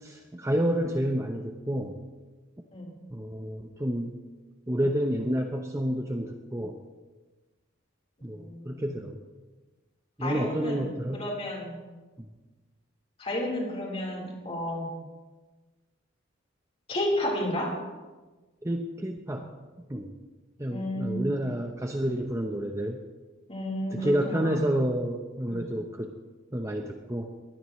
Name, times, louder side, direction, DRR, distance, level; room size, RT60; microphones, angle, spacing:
voice 1, 0.0-2.0 3.1-4.2 4.7-6.8 8.2-9.2 10.2-11.3 12.2-12.3 18.6-19.5 19.9-20.2 20.6-23.0 23.9-26.1 26.5-27.3, equal, 15° right, 3 dB, 0.9 m, -29 dB
voice 2, 8.2-8.8 10.2-11.8 13.2-14.9 16.9-17.8 20.7-21.3 23.5-24.6 25.5-25.6, left 1 dB, 30° left, -2 dB, 4.2 m, -32 dB
21.5 x 16.5 x 3.2 m, 1.3 s
head